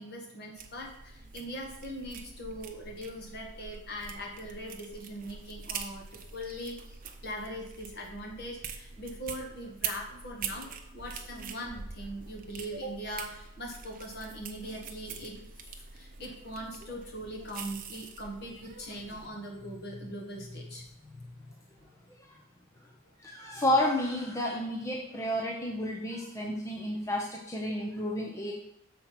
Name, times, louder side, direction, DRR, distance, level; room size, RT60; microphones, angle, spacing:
voice 1, 0.0-15.3 15.9-21.9, equal, 45° left, -1 dB, 1.6 m, -41 dB
sound 1, 0.6-19.3, right 6 dB, 40° right, 0.7 m, -44 dB
voice 2, 23.2-28.5, left 1 dB, 15° left, -1 dB, 0.6 m, -31 dB
6.7 x 4.5 x 5.8 m, 0.79 s
head